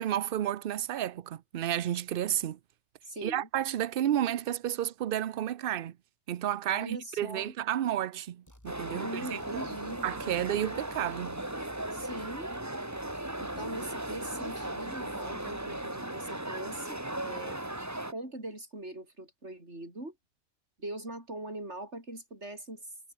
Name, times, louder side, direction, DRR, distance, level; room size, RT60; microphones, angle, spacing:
voice 1, 0.0-2.6 3.2-6.0 6.3-9.4 10.0-11.4, right 11 dB, 60° right, 0.8 m, -31 dB
voice 2, 3.0-3.5 6.7-7.5 9.0-10.2 11.9-12.5 13.4-17.6 18.1-20.2 20.8-22.8, right 1 dB, 80° right, 7.7 m, -41 dB
sound 1, 8.5-9.0 9.4-12.7 12.9-15.9, equal, 15° left, 5.1 m, -55 dB
sound 2, 8.7-18.1, right 1 dB, 15° right, 2.0 m, -37 dB
omnidirectional pair, 1.2 m